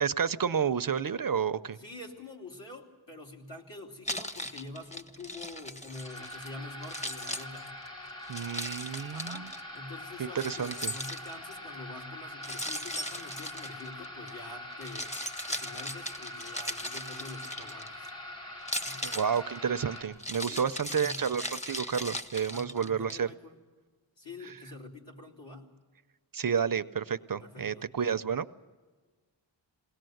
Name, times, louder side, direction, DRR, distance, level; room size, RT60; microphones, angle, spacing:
voice 1, 0.0-1.8 8.3-9.5 10.2-10.9 19.0-23.3 24.4-24.5 26.3-28.5, right 7 dB, 50° right, 13 dB, 0.6 m, -30 dB
voice 2, 1.7-7.8 9.1-15.1 15.5-18.1 18.8-19.0 20.5-21.2 22.5-23.5 24.2-25.7 27.4-27.9, left 2 dB, 70° left, -1 dB, 3.3 m, -46 dB
Keys jangling, 4.1-6.5 6.8-9.6 10.4-11.6 12.4-14.3 14.7-18.1 18.6-23.1, left 1 dB, 15° left, 0.9 m, -38 dB
sound 1, 5.9-20.0, left 1 dB, 50° left, 5.6 m, -44 dB
21.0 x 18.5 x 7.8 m, 1.4 s
wide cardioid pair, 95°, 45 cm